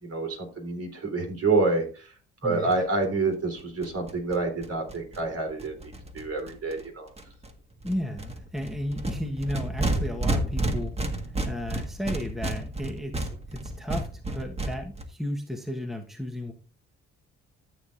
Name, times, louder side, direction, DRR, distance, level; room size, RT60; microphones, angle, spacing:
voice 1, 0.0-2.1 2.4-7.1, right 3 dB, 50° right, 3 dB, 3.7 m, -28 dB
voice 2, 2.4-2.7 7.8-10.9 11.4-16.5, left 1 dB, ahead, 3 dB, 1.3 m, -33 dB
sound 1, 2.7-2.8 3.0-3.1 3.3-3.4 3.6-6.8 7.2-7.5 7.8-15.0, right 1 dB, 20° right, 1.6 m, -32 dB
13.5 x 7.4 x 2.6 m, 0.36 s
cardioid pair, 90°, 30 cm